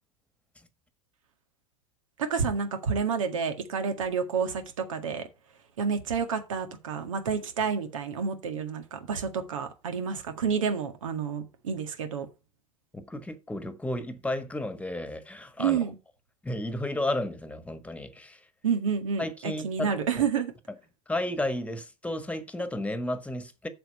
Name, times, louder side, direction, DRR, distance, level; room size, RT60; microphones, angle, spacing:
voice 1, 2.2-5.3 5.8-12.3 15.6-15.9 18.6-20.5, right 6 dB, 75° right, 1.9 m, -29 dB
voice 2, 12.9-15.8 16.4-18.5 19.2-20.3 21.1-23.7, left 1 dB, 10° left, 1.5 m, -33 dB
7.8 x 7.0 x 5.3 m
hypercardioid pair, 80°, 17 cm